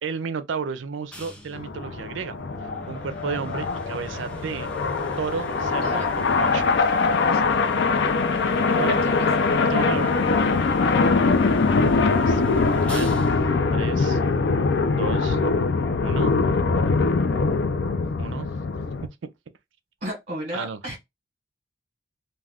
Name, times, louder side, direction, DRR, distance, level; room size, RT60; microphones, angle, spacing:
voice 1, 0.0-4.7 5.2-6.0 6.3-6.7 8.8-9.0 9.6-10.1 12.1-13.2 13.7-14.2 15.0-15.4 16.0-16.4 18.2-18.5 20.5-20.8, right 5 dB, 75° right, 0.4 m, -32 dB
sound 1, 1.1-14.6, equal, 5° left, 0.5 m, -40 dB
sound 2, 1.5-19.1, left 4 dB, 60° left, 0.4 m, -22 dB
voice 2, 8.9-9.3 11.3-11.7 20.0-21.0, equal, 40° right, 1.0 m, -34 dB
2.3 x 2.2 x 3.4 m
head